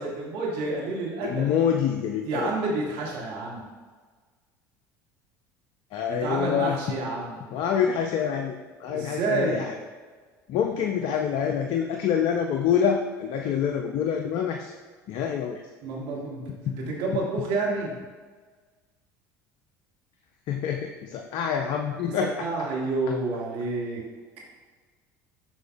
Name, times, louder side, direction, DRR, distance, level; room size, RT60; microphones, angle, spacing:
voice 1, 0.0-1.5 2.2-3.7 6.1-7.3 8.9-9.7 15.8-17.9 22.2-24.0, right 3 dB, 65° right, -3 dB, 1.8 m, -29 dB
voice 2, 1.2-2.5 5.9-6.8 7.5-9.8 10.5-14.7 15.1-15.6 16.6-16.8 20.5-22.5 23.1-23.2, left 8 dB, 60° left, 3 dB, 0.5 m, -26 dB
7.9 x 5.7 x 2.3 m, 1.4 s
hypercardioid pair, 70°, 10 cm